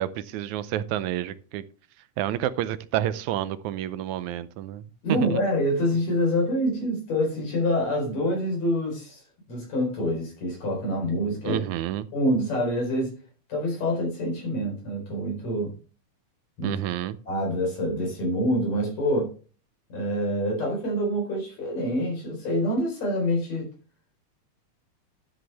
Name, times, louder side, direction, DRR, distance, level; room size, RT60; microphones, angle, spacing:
voice 1, 0.0-1.6 2.2-4.8 5.1-5.4 11.4-12.1 16.6-17.2, right 12 dB, 90° right, 14 dB, 2.1 m, -29 dB
voice 2, 5.0-9.2 9.5-11.6 12.1-13.1 13.5-15.7 16.6-16.8 17.3-19.3 19.9-23.7, equal, 65° left, 0 dB, 5.6 m, -26 dB
12.0 x 7.7 x 3.4 m, 0.37 s
omnidirectional pair, 3.3 m